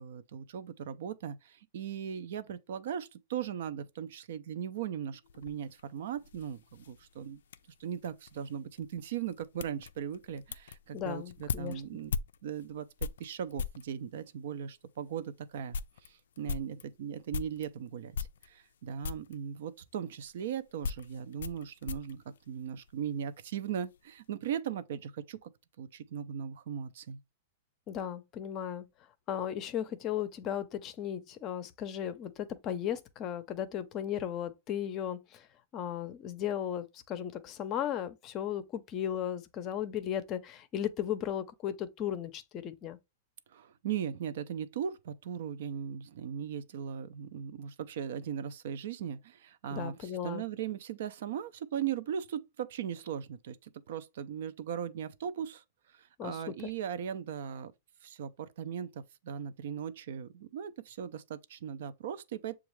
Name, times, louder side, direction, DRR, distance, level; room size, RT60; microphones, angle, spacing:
voice 1, 0.0-7.4 7.8-12.1 12.4-12.9 13.2-25.5 25.8-27.2 43.5-55.6 55.9-57.7 58.0-62.6, right 8 dB, 70° right, 0.5 m, -38 dB
sound 1, 5.2-13.9 14.6-14.7 15.2-15.3 15.5-17.7 18.1-18.8 19.0-19.4 20.2-23.1 23.4-24.0, left 5 dB, 85° left, 0.3 m, -40 dB
voice 2, 10.9-11.8 27.9-28.9 29.3-35.5 35.7-43.0 49.7-50.4 56.2-56.4, left 10 dB, 30° left, 0.5 m, -36 dB
6.9 x 2.4 x 3.1 m
hypercardioid pair, 145°, 0 cm